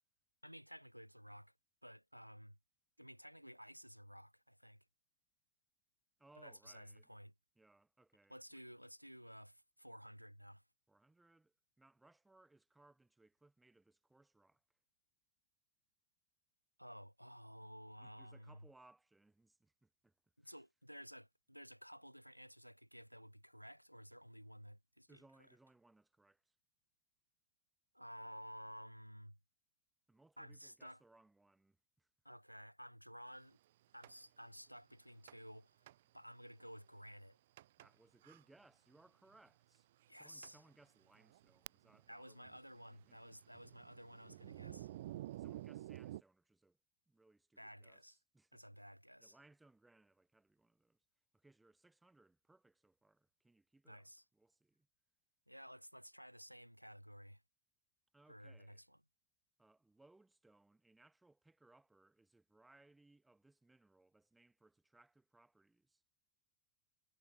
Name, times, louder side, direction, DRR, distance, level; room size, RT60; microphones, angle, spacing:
voice 1, 0.4-1.5 1.8-2.6 3.0-4.9 6.4-7.3 8.3-10.6 16.8-18.6 20.4-25.2 25.5-25.6 27.9-29.4 30.4-31.0 32.2-33.6 33.9-35.8 36.1-37.4 40.1-40.6 42.1-44.9 47.6-48.2 48.5-49.4 53.9-54.2 55.5-57.4 58.3-59.0, equal, 90° right, 1.9 m, -54 dB
voice 2, 6.2-7.1 7.5-8.6 10.9-14.6 18.0-20.1 20.4-20.6 25.1-26.5 30.1-32.1 37.8-39.9 40.1-43.4 45.3-46.8 47.1-48.7 49.2-51.0 51.3-54.9 58.1-58.8 59.6-66.0, right 2 dB, 5° right, 6.6 m, -68 dB
Thunder, 34.0-34.1 35.3-35.6 35.9-36.0 36.6-36.7 37.6-37.9 38.2-38.4 39.3-39.4 40.0-40.1 40.4-40.6 41.1-42.1 42.4-46.2, right 14 dB, 55° right, 1.1 m, -51 dB
figure-of-eight pair, 90°, 0 cm